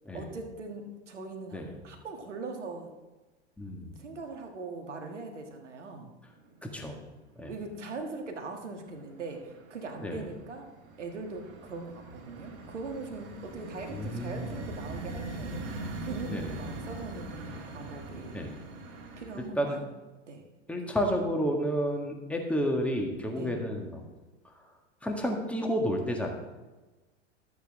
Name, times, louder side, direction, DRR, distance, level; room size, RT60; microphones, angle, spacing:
voice 1, 0.1-2.9 4.0-6.1 7.5-10.7 11.0-18.4 19.2-19.9 20.3-20.4 23.3-23.6, right 3 dB, 80° right, 3 dB, 1.6 m, -41 dB
voice 2, 3.6-4.0 6.6-7.0 7.3-7.5 10.0-10.3 13.9-14.6 16.3-16.6 18.3-18.5 19.5-19.8 20.7-24.0 24.4-24.6 25.0-26.3, equal, 5° left, 2 dB, 1.7 m, -31 dB
sound 1, 6.4-7.0 7.2-8.0 8.4-19.5, right 2 dB, 45° right, 2.0 m, -42 dB
12.5 x 8.2 x 3.6 m, 1.2 s
figure-of-eight pair, 85°, 35 cm